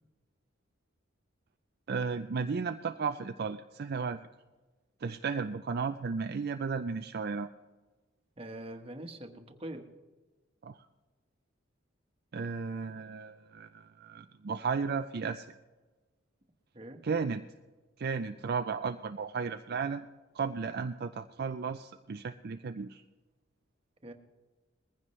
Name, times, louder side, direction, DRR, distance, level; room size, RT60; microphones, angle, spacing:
voice 1, 1.9-4.3 5.0-7.5 10.6-10.9 12.3-15.6 17.0-17.4 18.0-20.1 20.3-23.0, right 5 dB, 55° right, 7 dB, 0.5 m, -34 dB
voice 2, 8.4-9.9 16.7-17.0 24.0-24.1, right 1 dB, 30° right, 4 dB, 1.3 m, -43 dB
20.5 x 15.0 x 3.2 m, 1.3 s
head